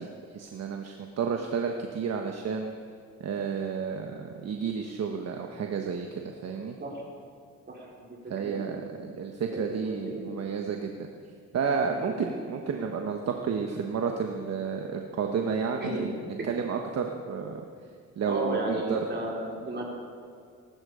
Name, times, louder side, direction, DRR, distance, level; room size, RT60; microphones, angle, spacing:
voice 1, 0.0-2.7 3.2-6.8 8.3-11.1 11.5-16.1 16.4-17.7 18.2-19.0, right 6 dB, 55° right, 3 dB, 1.3 m, -31 dB
voice 2, 7.7-8.1 8.4-9.0 9.5-10.3 12.0-12.2 15.7-16.1 18.2-19.8, right 2 dB, 35° right, -3 dB, 4.7 m, -34 dB
19.0 x 12.5 x 5.1 m, 2.3 s
cardioid pair, 90°, 30 cm